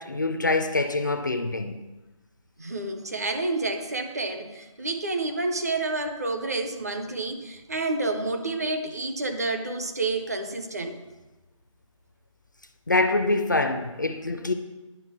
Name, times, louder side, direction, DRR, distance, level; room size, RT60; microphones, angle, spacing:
voice 1, 0.0-1.8 12.9-14.5, left 2 dB, 35° left, 0.4 m, -25 dB
voice 2, 2.6-11.0, right 2 dB, 30° right, 0.5 m, -29 dB
10.5 x 3.7 x 5.8 m
figure-of-eight pair, 160°, 17 cm